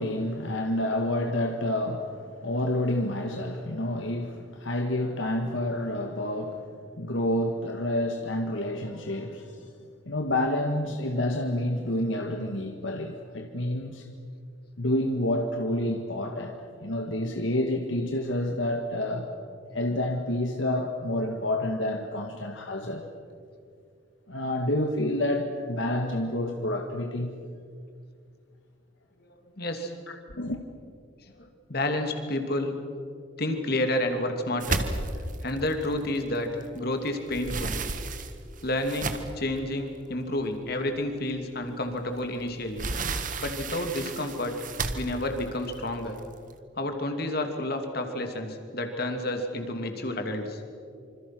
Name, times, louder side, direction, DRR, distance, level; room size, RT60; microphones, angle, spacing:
voice 1, 0.0-6.6 7.0-9.7 10.0-14.1 14.8-19.3 19.7-23.0 24.3-27.3 30.3-30.6, left 1 dB, 75° left, 4 dB, 1.7 m, -29 dB
voice 2, 29.2-29.9 31.2-32.8 33.4-34.8 35.4-37.8 38.6-42.9 43.4-44.5 44.9-46.2 46.8-50.6, left 1 dB, 50° left, 5 dB, 2.8 m, -30 dB
sound 1, 34.6-36.8 37.1-39.5 40.2-40.3 40.7-40.8 42.2-46.5, right 3 dB, 40° right, 1.6 m, -33 dB
27.0 x 26.0 x 6.2 m, 2.3 s
head